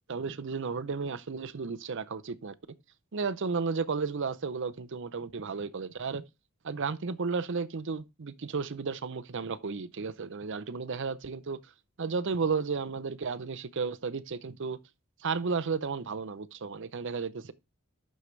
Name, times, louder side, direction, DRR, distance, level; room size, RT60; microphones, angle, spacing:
voice 1, 0.1-2.5 3.1-6.2 6.6-11.6 12.0-14.8 15.2-17.5, right 5 dB, 60° right, 0.6 m, -33 dB
9.6 x 6.5 x 3.2 m
head